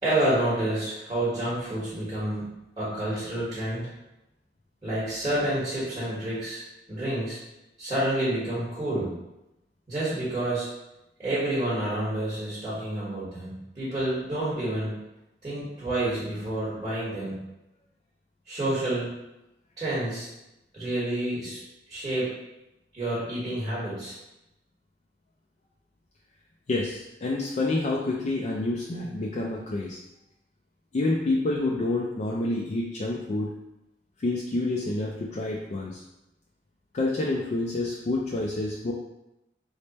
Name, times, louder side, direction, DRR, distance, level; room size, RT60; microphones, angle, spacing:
voice 1, 0.0-3.9 4.8-6.6 6.9-7.4 7.8-9.2 9.9-10.7 11.2-15.0 15.4-17.3 18.5-19.1 19.8-20.3 20.7-21.6 21.9-22.3 22.9-24.2, right 1 dB, 25° right, -10 dB, 1.2 m, -29 dB
voice 2, 26.7-30.0 30.9-33.5 34.2-36.0 36.9-38.9, left 2 dB, 40° left, -3 dB, 0.3 m, -28 dB
3.2 x 2.1 x 4.0 m, 0.91 s
head